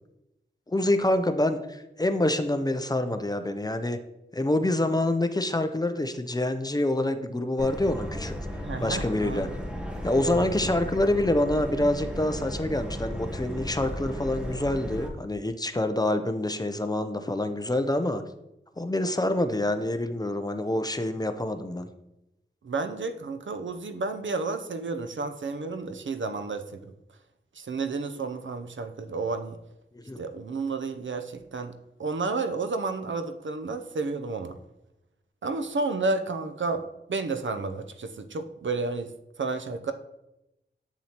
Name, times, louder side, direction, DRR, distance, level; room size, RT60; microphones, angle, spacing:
voice 1, 0.7-4.0 4.3-8.3 8.8-9.5 10.0-18.2 18.8-21.9 29.9-30.2, left 1 dB, 20° left, 8 dB, 0.5 m, -26 dB
Subway metro underground, 7.6-15.1, equal, 5° right, 1.0 m, -35 dB
voice 2, 8.6-9.5 10.2-10.5 22.6-26.9 27.6-29.6 30.2-31.7 32.0-34.6 35.4-36.8 37.1-39.1 39.4-39.9, right 3 dB, 75° right, 8 dB, 0.6 m, -31 dB
7.9 x 7.2 x 2.9 m, 0.91 s
wide cardioid pair, 85°, 20 cm